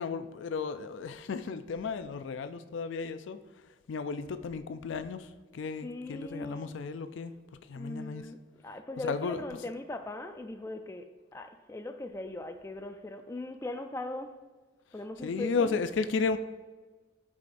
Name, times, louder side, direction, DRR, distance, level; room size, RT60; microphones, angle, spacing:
voice 1, 0.0-3.4 3.9-7.3 7.7-8.3 9.0-9.4 15.2-16.4, left 5 dB, 85° left, 10 dB, 0.4 m, -34 dB
voice 2, 5.8-6.7 7.7-8.4 8.6-11.1 11.3-14.3 14.9-15.7, left 2 dB, 15° left, 6 dB, 0.3 m, -39 dB
12.0 x 4.9 x 2.6 m, 1.3 s
head